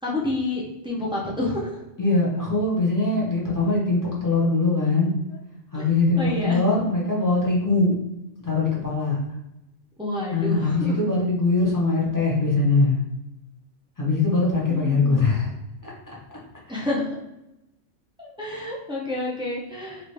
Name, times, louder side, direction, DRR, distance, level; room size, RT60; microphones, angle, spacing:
voice 1, 0.0-1.8 5.7-5.9 6.2-6.7 10.0-11.0 14.7-15.2 16.7-17.2 18.2-20.1, left 2 dB, 5° right, -5 dB, 0.4 m, -29 dB
voice 2, 2.0-5.2 5.7-7.9 8.4-9.2 10.3-13.0 14.0-15.5 15.8-15.9, left 3 dB, 20° left, -5 dB, 0.8 m, -22 dB
2.9 x 2.5 x 3.2 m, 0.89 s
omnidirectional pair, 1.3 m